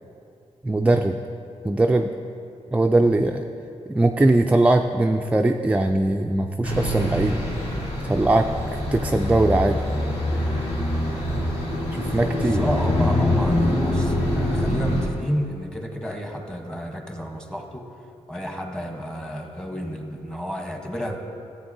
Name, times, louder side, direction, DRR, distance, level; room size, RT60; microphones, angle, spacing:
voice 1, 0.6-1.2 1.6-2.1 2.7-3.4 3.9-7.4 8.1-8.5 8.9-9.8 12.0-12.6, right 2 dB, 10° right, 4 dB, 0.3 m, -20 dB
sound 1, 6.6-15.1, left 1 dB, 60° left, 2.0 m, -24 dB
voice 2, 11.8-17.9 18.3-21.2, equal, 5° left, 3 dB, 1.0 m, -31 dB
13.5 x 7.9 x 2.7 m, 2.6 s
cardioid pair, 85°, 12 cm